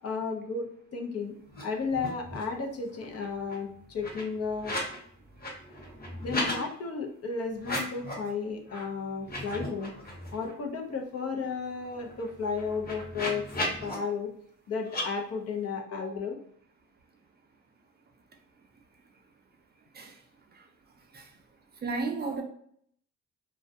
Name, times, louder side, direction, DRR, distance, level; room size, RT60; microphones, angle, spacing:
voice 1, 0.0-1.3 1.6-4.8 6.2-9.9 10.3-13.5 13.8-14.3 14.7-16.4, left 5 dB, 55° left, 2 dB, 0.6 m, -33 dB
sound 1, 1.5-1.6 1.9-2.6 2.9-5.0 5.3-6.6 7.5-8.3 8.7-8.8 9.2-10.5 10.9-11.0 11.3-13.9 14.8-15.0, left 1 dB, 30° left, 1.0 m, -36 dB
voice 2, 19.9-21.4 21.7-22.4, right 3 dB, 35° right, 4 dB, 0.5 m, -37 dB
2.3 x 2.1 x 2.7 m, 0.65 s
cardioid pair, 90°, 30 cm